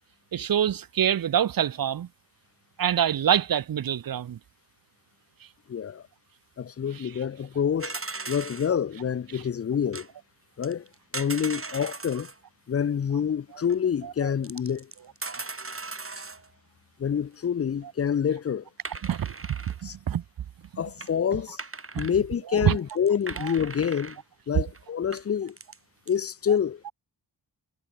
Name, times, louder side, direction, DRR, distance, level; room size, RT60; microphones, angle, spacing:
voice 1, 0.3-2.1 2.8-4.4 14.0-14.1 19.0-19.3 19.8-20.2 20.7-20.8 21.9-22.1 22.5-22.8 23.4-23.5, right 9 dB, 50° right, 0.6 m, -25 dB
voice 2, 5.7-6.0 6.6-7.9 8.3-10.1 10.6-10.9 11.1-12.3 12.7-14.9 17.0-18.6 19.8-20.0 20.8-21.6 21.9-24.2 24.5-25.6 26.1-26.9, left 8 dB, 35° left, 0.5 m, -27 dB
sound 1, 7.8-8.7 9.9-10.1 10.6-12.4 13.7-13.8 14.4-16.5 18.8-19.8 20.6-20.7 21.0-21.1 21.6-22.2 22.6-22.7 22.9-24.2 24.7-24.8 25.1-25.8 26.1-26.2, right 3 dB, 30° right, 2.3 m, -38 dB
wide cardioid pair, 80°, 44 cm